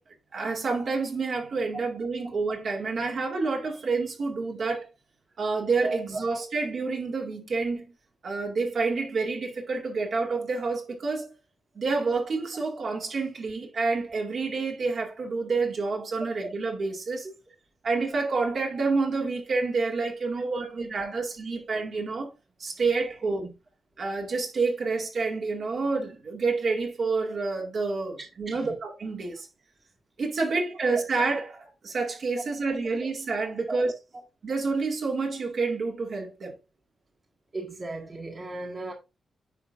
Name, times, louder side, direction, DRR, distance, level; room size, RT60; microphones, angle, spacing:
voice 1, 0.3-4.9 5.4-7.8 8.2-11.3 11.8-17.3 17.8-22.3 22.6-23.5 24.0-29.5 30.2-33.9 34.4-36.6, right 4 dB, 55° right, 2.1 m, -28 dB
voice 2, 28.2-28.8 33.7-33.8 37.5-38.9, right 2 dB, 30° right, 1.8 m, -36 dB
10.0 x 5.0 x 2.5 m
wide cardioid pair, 125°, 0 cm